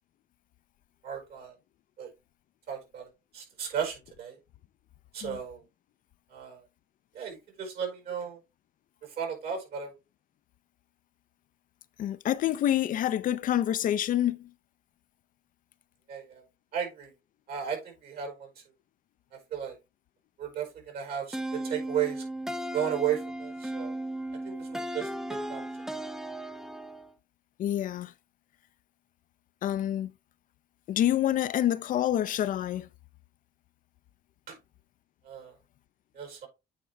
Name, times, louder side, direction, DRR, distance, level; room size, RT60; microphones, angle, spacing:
voice 1, 1.0-1.5 2.0-2.1 2.7-4.4 5.1-5.6 6.3-6.6 7.1-8.4 9.0-9.9 16.1-16.4 16.7-17.1 17.5-18.5 19.3-19.8 20.4-22.2 22.7-23.9 24.4-25.7 34.5-34.6 35.2-35.5 36.1-36.5, right 8 dB, 65° right, 4.8 m, -35 dB
voice 2, 12.0-14.5 27.6-28.1 29.6-30.1 30.9-32.9, left 11 dB, 55° left, 0.5 m, -27 dB
sound 1, 21.3-27.1, right 1 dB, 5° right, 0.5 m, -36 dB
8.7 x 4.4 x 3.4 m
cardioid pair, 110°, 17 cm